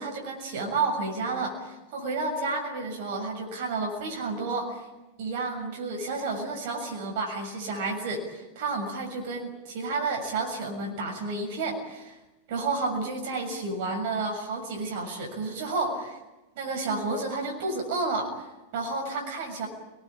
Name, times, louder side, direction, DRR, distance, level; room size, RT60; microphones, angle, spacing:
voice 1, 0.0-4.9 5.2-12.2 12.5-16.2 16.5-19.7, right 3 dB, 50° right, 2 dB, 6.7 m, -31 dB
29.5 x 20.5 x 8.7 m, 1.1 s
figure-of-eight pair, 90°, 0 cm